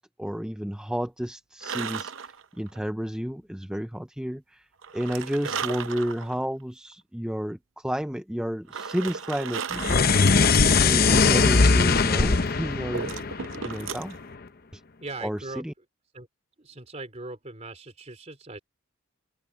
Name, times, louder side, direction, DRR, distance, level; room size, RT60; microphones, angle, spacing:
voice 1, 0.0-4.7 4.9-13.2 13.6-14.2 14.7-14.8 15.2-15.7, equal, 5° right, 0.5 m, -31 dB
sound 1, 1.6-2.8 4.8-6.4 6.9-7.0 8.7-10.3 12.5-14.2, right 6 dB, 70° right, 0.7 m, -35 dB
sound 2, 9.7-14.2, left 4 dB, 45° left, 0.8 m, -20 dB
voice 2, 15.0-15.6 16.1-16.3 16.6-18.6, right 2 dB, 35° right, 3.3 m, -40 dB
head